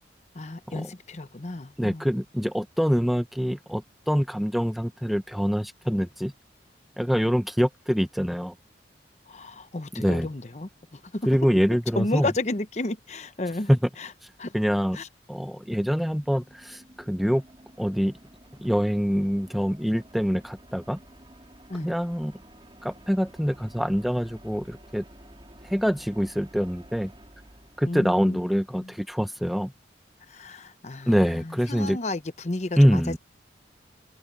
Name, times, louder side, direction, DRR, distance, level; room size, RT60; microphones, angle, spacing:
voice 1, 0.3-2.0 9.3-11.3 12.0-13.7 14.0-14.1 14.4-14.5 14.9-15.1 21.7-21.9 27.8-28.4 28.8-28.9 30.3-33.2, left 2 dB, 40° left, 0.9 m, -32 dB
voice 2, 1.8-6.3 7.0-8.5 9.9-10.3 11.2-12.3 13.7-13.8 14.2-15.0 15.3-17.4 17.8-18.1 18.6-21.0 21.8-22.3 22.8-25.0 25.6-27.1 27.8-29.7 31.1-32.0 32.8-33.2, equal, ahead, 0.6 m, -25 dB
sound 1, 16.0-28.5, right 1 dB, 30° right, 3.9 m, -51 dB
head